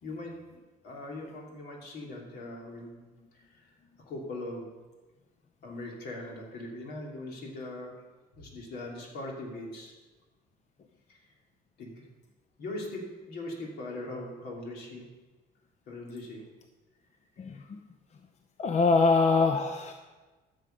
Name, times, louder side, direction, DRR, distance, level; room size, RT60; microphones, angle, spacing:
voice 1, 0.0-3.0 3.3-3.7 4.0-4.7 5.6-8.0 8.3-9.9 11.1-11.2 11.8-12.1 12.6-15.1 15.9-16.5, left 2 dB, 70° left, -1 dB, 3.1 m, -40 dB
voice 2, 17.4-17.8 18.6-19.9, left 4 dB, 40° left, 6 dB, 0.7 m, -24 dB
13.5 x 7.0 x 5.2 m, 1.2 s
cardioid pair, 110°, 17 cm